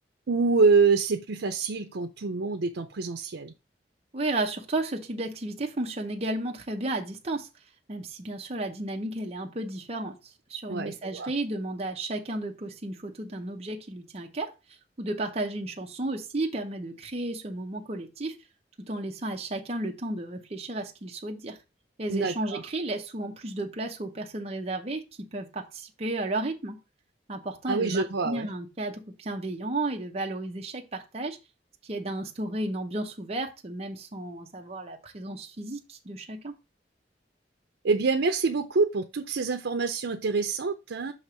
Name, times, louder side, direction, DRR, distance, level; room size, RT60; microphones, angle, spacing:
voice 1, 0.3-3.5 10.7-11.3 22.1-22.6 27.7-28.5 37.8-41.1, right 4 dB, 80° right, 0.6 m, -26 dB
voice 2, 4.1-7.5 7.9-14.5 15.0-18.4 18.9-21.6 22.0-26.8 27.3-31.4 31.8-36.5, right 2 dB, 35° right, 0.7 m, -33 dB
6.4 x 2.9 x 5.6 m
head